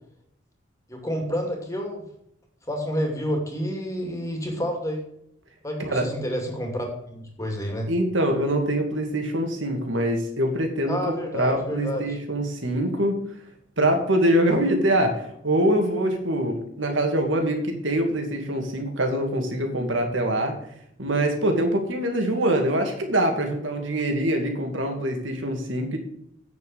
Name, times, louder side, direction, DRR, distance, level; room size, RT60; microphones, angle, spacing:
voice 1, 0.9-2.0 2.7-5.0 5.6-7.9 10.9-12.2, equal, 15° left, 2 dB, 2.5 m, -29 dB
voice 2, 7.9-13.2 13.8-20.5 21.0-26.0, right 1 dB, 75° right, 4 dB, 2.4 m, -24 dB
9.0 x 6.8 x 7.1 m, 0.74 s
head